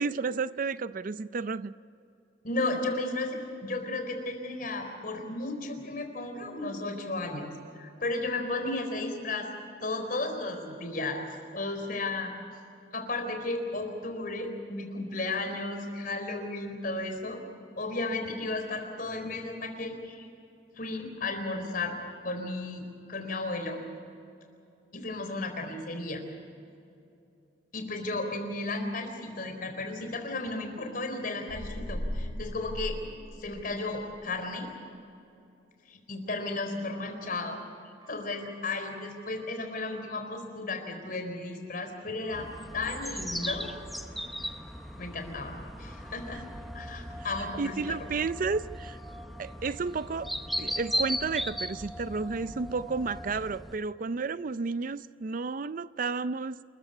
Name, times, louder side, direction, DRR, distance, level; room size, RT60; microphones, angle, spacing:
voice 1, 0.0-1.7 46.3-46.4 47.6-49.0 49.4-50.3 50.6-56.6, right 4 dB, 45° right, 0.4 m, -32 dB
voice 2, 2.4-7.5 7.8-9.5 9.8-11.2 11.5-12.3 12.9-17.4 17.8-20.3 20.8-21.9 22.2-23.8 24.9-26.2 27.7-33.0 33.4-34.7 35.9-37.6 38.1-42.5 42.7-43.7 45.0-46.4 46.7-48.0, left 2 dB, 50° left, 4.2 m, -34 dB
sound 1, 31.5-33.9, equal, 90° left, 3.5 m, -36 dB
sound 2, 36.9-37.4 38.0-39.4 39.7-40.2 42.2-42.8 43.4-45.0 45.5-45.9 47.9-48.4 48.9-50.4 50.9-51.3, left 1 dB, 25° right, 4.0 m, -56 dB
sound 3, 42.3-53.8, equal, ahead, 0.9 m, -37 dB
28.0 x 15.0 x 8.5 m
head